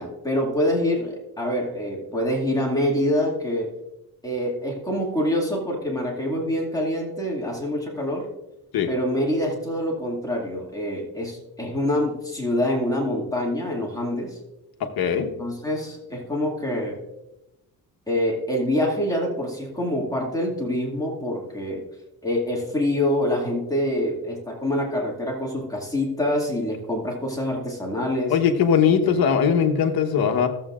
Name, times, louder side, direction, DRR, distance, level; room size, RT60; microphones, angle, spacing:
voice 1, 0.0-3.7 4.2-8.3 8.9-14.4 15.4-17.0 18.1-21.9 22.2-28.4 29.0-29.3, left 1 dB, 10° left, -3 dB, 2.2 m, -26 dB
voice 2, 15.0-15.3 28.3-30.5, left 7 dB, 65° left, 5 dB, 1.2 m, -20 dB
14.5 x 7.7 x 2.5 m, 0.95 s
cardioid pair, 110°, 39 cm